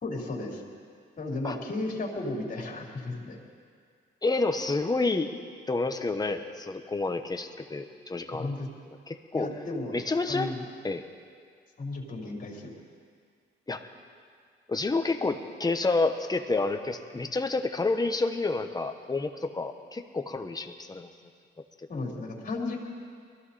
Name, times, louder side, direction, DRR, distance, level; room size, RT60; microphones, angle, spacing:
voice 1, 0.0-0.6 1.2-3.4 8.3-8.7 9.3-10.0 10.3-10.6 11.8-12.7 21.9-22.8, left 2 dB, 45° left, -1 dB, 3.6 m, -34 dB
voice 2, 4.2-5.3 5.7-8.5 9.1-9.5 9.9-10.5 10.8-11.0 13.7-13.8 14.7-21.1, left 3 dB, 20° left, 6 dB, 1.2 m, -29 dB
22.5 x 14.5 x 4.3 m, 2.1 s
cardioid pair, 90°, 20 cm